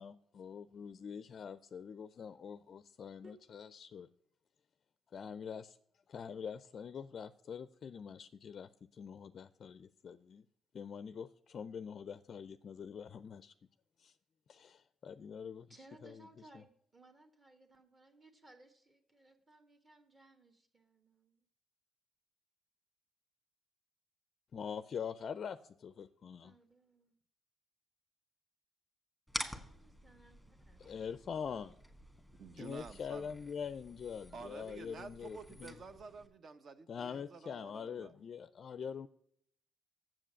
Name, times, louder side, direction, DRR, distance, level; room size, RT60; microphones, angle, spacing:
voice 1, 0.0-4.1 5.1-5.8 6.1-10.4 10.7-13.5 14.0-14.1 14.5-15.7 16.0-16.3 24.5-26.5 30.8-31.7 32.5-35.8 36.9-39.1, left 7 dB, 50° left, 0.4 m, -44 dB
voice 2, 15.7-21.5 26.4-27.1 29.5-30.8, right 1 dB, 30° right, 1.5 m, -62 dB
sound 1, 29.3-36.3, equal, 5° right, 1.5 m, -48 dB
voice 3, 32.4-33.4 34.3-38.2, right 4 dB, 50° right, 1.0 m, -50 dB
7.6 x 7.4 x 6.2 m
cardioid pair, 105°, 0 cm